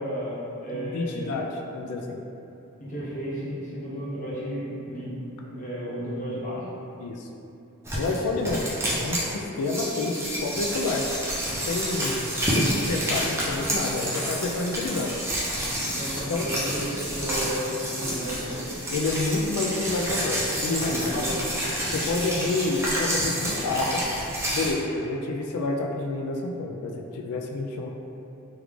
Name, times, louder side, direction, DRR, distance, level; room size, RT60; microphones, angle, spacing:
voice 1, 0.0-1.5 2.8-5.2 5.4-6.7 15.8-18.7 20.9-21.4, equal, 35° left, -8 dB, 0.8 m, -33 dB
voice 2, 0.7-2.2 7.0-7.3 7.9-8.6 9.0-11.1 11.5-15.1 16.3-16.5 18.9-21.4 21.9-24.0 24.5-27.9, left 3 dB, 90° left, 2 dB, 0.3 m, -29 dB
sound 1, 7.8-9.3 9.6-24.7, right 1 dB, 10° right, 0.4 m, -29 dB
3.1 x 2.4 x 3.4 m, 2.8 s
head